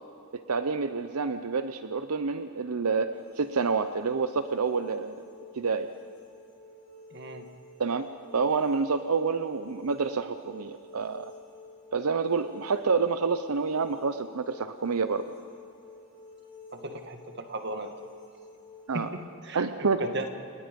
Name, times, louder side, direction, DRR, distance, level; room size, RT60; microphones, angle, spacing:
voice 1, 0.3-5.2 5.6-5.9 7.8-8.1 8.3-11.3 11.9-15.2 18.9-19.1 19.5-20.0, right 5 dB, 90° right, 10 dB, 0.7 m, -28 dB
sound 1, 3.1-19.0, left 4 dB, 20° left, 5.0 m, -50 dB
voice 2, 7.1-7.5 16.7-17.9 18.9-20.3, right 2 dB, 50° right, 6 dB, 1.8 m, -36 dB
29.0 x 19.0 x 5.3 m, 2.7 s
head